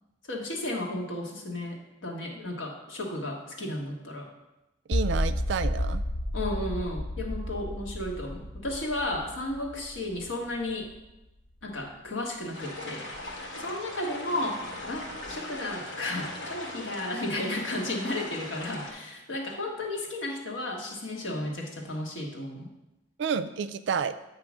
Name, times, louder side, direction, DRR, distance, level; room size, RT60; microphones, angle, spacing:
voice 1, 0.3-4.3 6.3-10.9 11.6-13.1 13.6-14.6 14.9-22.7, left 1 dB, 80° left, 0 dB, 1.3 m, -33 dB
sound 1, 4.9-11.0, left 1 dB, 40° left, 0.4 m, -32 dB
voice 2, 4.9-6.0 23.2-24.2, right 6 dB, 65° right, 12 dB, 0.3 m, -30 dB
sound 2, 12.5-18.9, left 1 dB, 65° left, 1.2 m, -39 dB
8.4 x 2.9 x 6.0 m, 0.96 s
head